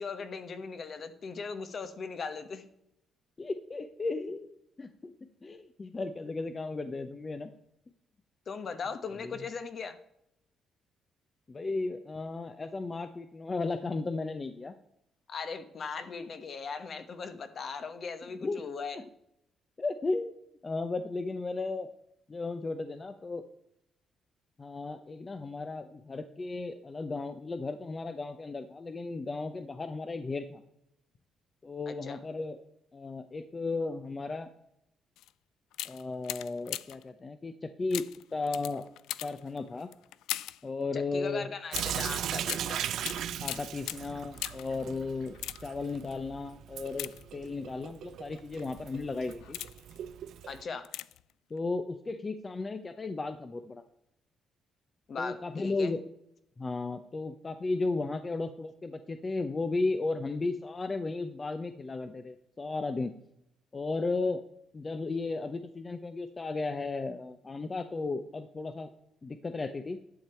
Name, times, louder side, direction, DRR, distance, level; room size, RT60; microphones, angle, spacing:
voice 1, 0.0-2.7 8.5-10.0 15.3-19.0 31.9-32.2 40.9-42.9 50.5-50.9 55.1-55.9, left 5 dB, 50° left, 10 dB, 1.2 m, -39 dB
voice 2, 3.4-5.1 5.4-7.5 9.2-9.4 11.5-14.7 18.4-18.7 18.9-19.0 19.8-20.3 20.6-21.9 22.3-23.4 24.6-30.6 31.6-32.6 32.9-34.5 35.8-38.0 38.3-38.9 39.2-39.9 40.6-41.5 43.4-45.4 45.6-49.6 51.5-53.8 55.2-56.0 56.6-63.1 63.7-64.4 64.7-68.9 69.2-70.0, left 3 dB, 30° left, 9 dB, 0.7 m, -35 dB
sound 1, 35.2-35.3 35.7-37.1 37.9-40.7 41.7-44.8 45.3-45.9 46.9-47.7 48.4-48.6 49.2-50.0 50.8-51.3 51.6-51.7, left 14 dB, 90° left, 0.3 m, -40 dB
Sink (filling or washing) / Drip, 41.7-50.6, right 10 dB, 75° right, 0.5 m, -38 dB
11.5 x 6.9 x 4.4 m, 0.79 s
cardioid pair, 90°, 0 cm